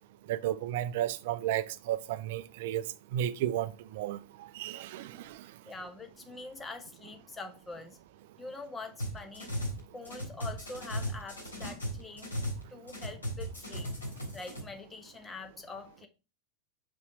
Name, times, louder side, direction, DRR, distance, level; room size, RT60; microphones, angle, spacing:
voice 1, 0.3-5.4, right 12 dB, 55° right, 0.5 m, -33 dB
voice 2, 5.6-8.0 8.4-9.5 9.9-12.4 12.7-13.9 14.3-16.1, left 3 dB, 15° left, 1.2 m, -44 dB
sound 1, 9.0-9.8 10.0-12.6 12.9-14.6, equal, 75° left, 3.7 m, -36 dB
5.6 x 5.3 x 4.5 m
figure-of-eight pair, 85°, 0 cm